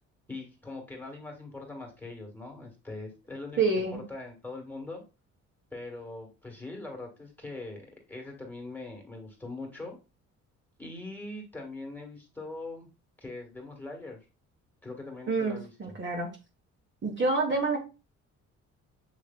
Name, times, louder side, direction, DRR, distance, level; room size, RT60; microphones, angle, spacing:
voice 1, 0.3-5.0 5.7-10.0 10.8-12.9 13.2-14.2 14.8-16.0, left 2 dB, 5° left, 1 dB, 1.5 m, -42 dB
voice 2, 3.6-3.9 15.3-16.3 17.0-17.8, right 3 dB, 40° right, -1 dB, 1.2 m, -27 dB
6.7 x 3.1 x 2.2 m, 0.30 s
cardioid pair, 90°, 30 cm